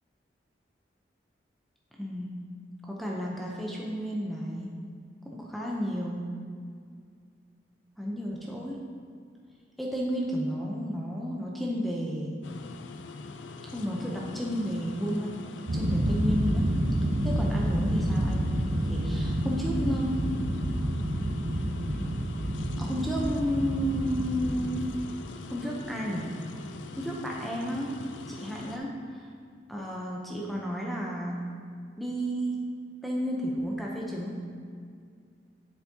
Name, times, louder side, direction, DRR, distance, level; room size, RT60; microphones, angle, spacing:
voice 1, 2.0-2.4 2.8-4.7 5.2-6.3 8.0-8.8 9.8-12.4 13.7-15.4 15.7-16.8 17.2-20.4 22.8-24.9 25.5-26.3 27.0-28.0 28.3-29.3 29.7-31.4 32.0-32.6 33.0-34.4, equal, ahead, -3 dB, 0.6 m, -32 dB
sound 1, 12.4-28.8, left 3 dB, 80° left, 0.4 m, -43 dB
sound 2, 15.7-24.9, right 1 dB, 50° right, 0.6 m, -29 dB
8.0 x 7.2 x 2.8 m, 2.2 s
head